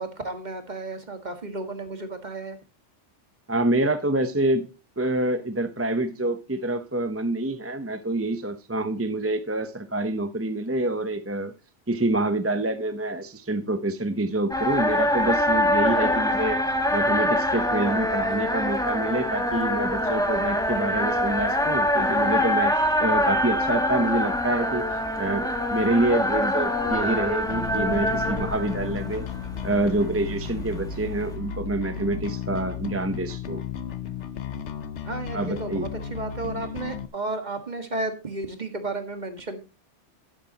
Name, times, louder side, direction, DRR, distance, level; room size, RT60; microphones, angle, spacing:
voice 1, 0.0-2.6 35.0-39.6, right 2 dB, 40° right, 7 dB, 1.8 m, -33 dB
voice 2, 3.5-4.6 5.0-11.5 11.9-16.6 16.9-24.8 25.2-29.2 29.6-33.6 35.3-35.9, right 2 dB, 15° right, 10 dB, 0.6 m, -27 dB
sound 1, 14.5-31.3, left 1 dB, 5° left, 1.4 m, -25 dB
Bass guitar, 27.5-37.1, left 7 dB, 75° left, 1.1 m, -34 dB
12.0 x 11.0 x 2.9 m, 0.31 s
omnidirectional pair, 1.2 m